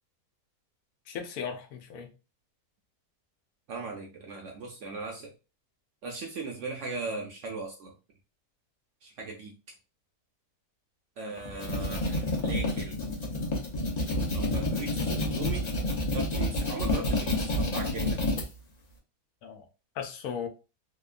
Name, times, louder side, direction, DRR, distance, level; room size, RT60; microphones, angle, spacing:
voice 1, 1.1-2.1 19.4-19.7 20.0-20.5, left 7 dB, 75° left, 1.0 m, -36 dB
voice 2, 3.7-5.3 6.0-7.9 9.0-9.7 11.2-13.0 14.3-15.7 16.1-18.2, right 3 dB, 65° right, 0.8 m, -38 dB
sound 1, 11.4-18.4, left 1 dB, 50° left, 0.5 m, -29 dB
2.9 x 2.1 x 2.3 m
omnidirectional pair, 1.6 m